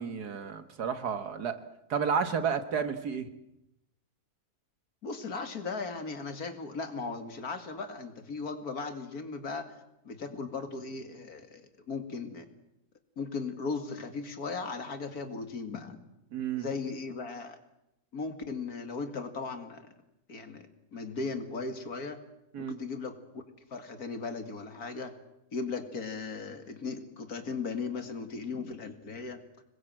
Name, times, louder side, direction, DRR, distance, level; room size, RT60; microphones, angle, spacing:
voice 1, 0.0-1.6 1.9-3.3 16.3-16.7 22.5-22.8, right 6 dB, 80° right, 9 dB, 2.1 m, -31 dB
voice 2, 5.0-9.8 10.0-12.5 13.2-16.0 16.6-17.6 18.1-19.9 20.3-22.2 22.6-23.4 23.7-25.1 25.5-29.4, left 4 dB, 70° left, 7 dB, 2.6 m, -37 dB
26.0 x 21.5 x 7.7 m, 0.86 s
omnidirectional pair, 1.7 m